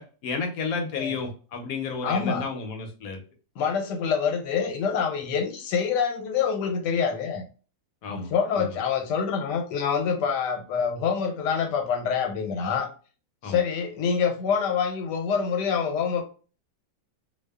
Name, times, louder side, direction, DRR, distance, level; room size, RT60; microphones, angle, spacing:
voice 1, 0.0-3.2 8.0-8.3 8.5-8.8 13.4-13.6, left 4 dB, 70° left, 3 dB, 1.0 m, -32 dB
voice 2, 2.0-2.5 3.6-7.4 8.1-12.9 13.4-16.2, left 6 dB, 90° left, 4 dB, 1.2 m, -26 dB
2.7 x 2.3 x 2.2 m, 0.36 s
omnidirectional pair, 1.8 m